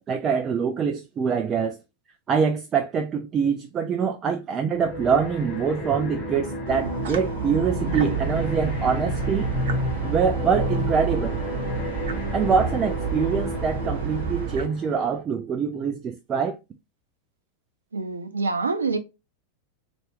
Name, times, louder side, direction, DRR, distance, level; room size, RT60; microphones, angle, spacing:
voice 1, 0.0-1.8 2.3-9.5 10.0-11.4 12.3-16.6, right 6 dB, 25° right, 0.5 m, -24 dB
sound 1, 4.7-15.2, left 1 dB, 35° left, 1.4 m, -31 dB
sound 2, 6.7-14.7, right 6 dB, 55° right, 0.9 m, -30 dB
voice 2, 17.9-19.0, right 4 dB, 75° right, 0.7 m, -26 dB
4.4 x 2.5 x 3.2 m
figure-of-eight pair, 90°, 0 cm